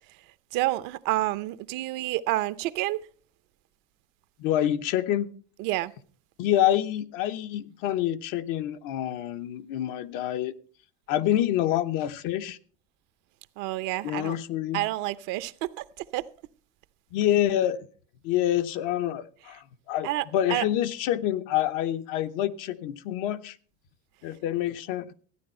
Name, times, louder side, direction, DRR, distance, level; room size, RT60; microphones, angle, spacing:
voice 1, 0.5-3.0 5.6-5.9 13.6-14.4 14.7-15.8 16.1-16.2 19.5-19.6 20.0-20.7, right 17 dB, 70° right, 0.7 m, -29 dB
voice 2, 4.4-5.4 6.4-10.5 11.1-12.6 14.0-14.8 17.1-17.9 18.2-23.6 24.2-25.1, left 12 dB, 70° left, 0.9 m, -27 dB
14.0 x 9.5 x 4.3 m
cardioid pair, 145°, 33 cm